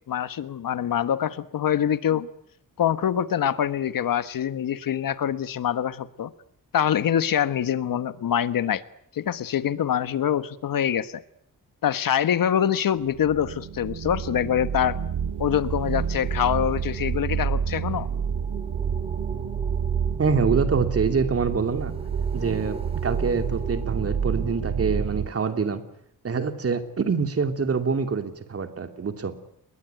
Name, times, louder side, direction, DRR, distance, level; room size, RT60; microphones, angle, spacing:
voice 1, 0.1-2.3 2.8-6.3 6.7-8.8 9.1-11.2 11.8-15.0 15.4-18.1, left 9 dB, 80° left, 13 dB, 1.4 m, -25 dB
sound 1, 13.1-25.3, right 7 dB, 90° right, 2.1 m, -29 dB
sound 2, 15.1-25.0, right 3 dB, 15° right, 3.3 m, -43 dB
voice 2, 20.2-21.9 22.3-25.8 26.2-29.3, right 5 dB, 45° right, 7 dB, 3.0 m, -25 dB
29.0 x 21.5 x 9.4 m, 0.70 s
wide cardioid pair, 150°, 34 cm